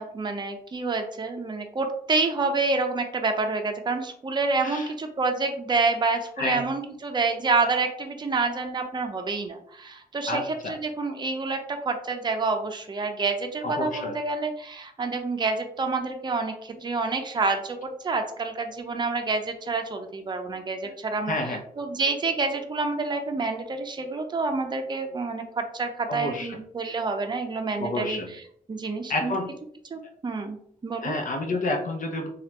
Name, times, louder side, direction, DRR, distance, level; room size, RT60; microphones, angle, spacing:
voice 1, 0.0-21.4 21.8-28.2 28.7-29.3 29.9-31.2, right 3 dB, 30° right, 4 dB, 0.6 m, -28 dB
voice 2, 10.3-10.8 13.6-14.2 20.8-20.9 21.3-21.6 26.1-26.6 27.8-28.3 29.1-29.5 31.0-32.3, left 2 dB, 65° left, 3 dB, 0.7 m, -29 dB
3.1 x 2.4 x 2.9 m, 0.64 s
cardioid pair, 90°, 15 cm